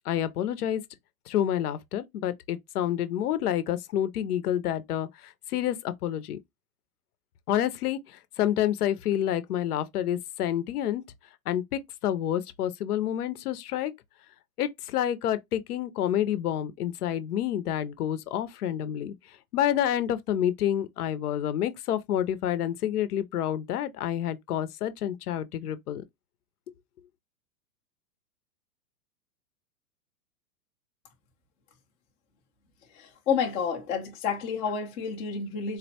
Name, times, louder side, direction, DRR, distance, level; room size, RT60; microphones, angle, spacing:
voice 1, 0.1-0.8 1.3-6.4 7.5-11.0 11.5-13.9 14.6-19.1 19.5-26.0, left 11 dB, 75° left, 0.6 m, -28 dB
voice 2, 33.0-35.8, left 6 dB, 15° left, 0.3 m, -30 dB
3.9 x 2.1 x 2.7 m
hypercardioid pair, 125°, 46 cm